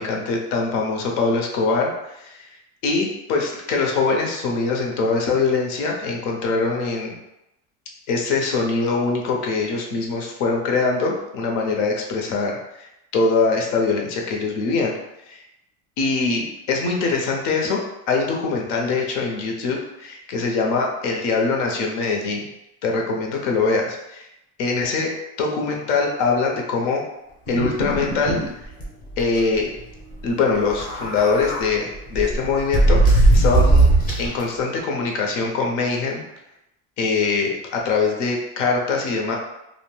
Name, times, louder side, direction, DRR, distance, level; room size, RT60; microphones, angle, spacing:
voice 1, 0.0-1.9 2.2-2.5 2.8-7.1 8.1-12.5 13.1-14.9 15.3-15.4 16.0-17.8 18.1-22.4 22.8-24.3 24.6-25.1 25.4-27.0 27.5-28.4 29.2-29.7 30.2-33.9 34.2-36.2 37.0-39.4, left 4 dB, 80° left, 0 dB, 0.8 m, -23 dB
sound 1, 27.5-28.5 28.8-28.9 29.2-29.4 30.6-31.6 32.1-34.4, right 2 dB, 25° left, 0.6 m, -18 dB
2.6 x 2.1 x 3.1 m, 0.88 s
cardioid pair, 165°, 36 cm